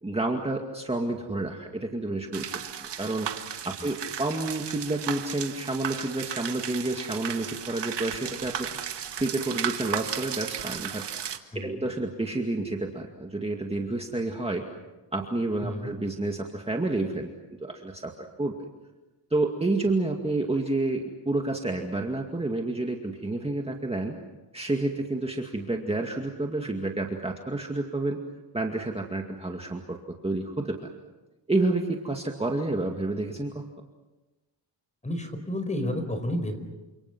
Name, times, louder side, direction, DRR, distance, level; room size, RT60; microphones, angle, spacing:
voice 1, 0.0-2.5 2.8-3.3 3.6-8.7 9.2-11.0 11.5-14.7 15.1-17.3 17.6-18.1 18.4-18.5 19.3-24.2 24.5-28.2 28.5-30.0 30.2-30.9 31.5-33.7, right 2 dB, 15° right, 2 dB, 2.2 m, -29 dB
sound 1, 2.3-11.4, right 8 dB, 70° right, 2.0 m, -35 dB
voice 2, 15.6-15.9 35.0-36.6, left 1 dB, 15° left, 8 dB, 4.8 m, -31 dB
29.0 x 27.5 x 6.1 m, 1.1 s
cardioid pair, 110°, 43 cm